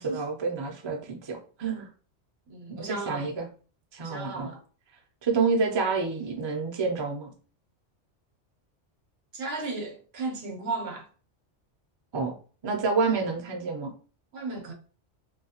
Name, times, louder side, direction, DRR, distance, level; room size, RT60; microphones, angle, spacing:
voice 1, 0.0-1.9 2.9-3.5 3.9-4.5 5.2-7.3 12.1-12.3 12.6-13.9, right 4 dB, 45° right, 0.3 m, -28 dB
voice 2, 2.5-3.3 4.0-4.6 9.3-11.1 14.3-14.7, right 3 dB, 65° right, 0.9 m, -35 dB
2.6 x 2.3 x 2.8 m
omnidirectional pair, 1.2 m